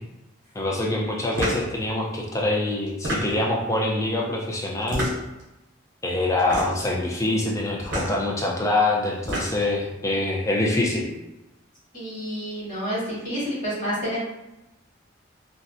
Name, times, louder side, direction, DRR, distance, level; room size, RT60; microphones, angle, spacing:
voice 1, 0.5-5.1 6.0-11.1, left 2 dB, 15° left, -2 dB, 0.4 m, -25 dB
sound 1, 1.3-1.7 2.9-3.6 4.8-5.4 6.4-6.9 7.8-8.1 9.0-9.7, right 1 dB, 60° right, 0.8 m, -28 dB
voice 2, 11.9-14.2, equal, 40° left, -10 dB, 1.3 m, -29 dB
2.6 x 2.0 x 2.5 m, 0.96 s
head